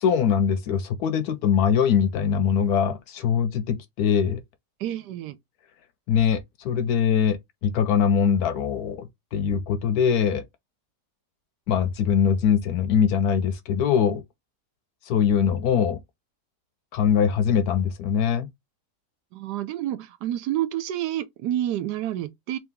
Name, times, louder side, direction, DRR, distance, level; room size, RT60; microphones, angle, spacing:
voice 1, 0.0-4.4 6.1-10.4 11.7-14.2 15.1-16.0 16.9-18.5, left 7 dB, 70° left, 1.0 m, -22 dB
voice 2, 4.8-5.4 19.3-22.6, right 12 dB, 75° right, 1.2 m, -29 dB
3.8 x 2.9 x 3.4 m
omnidirectional pair, 1.8 m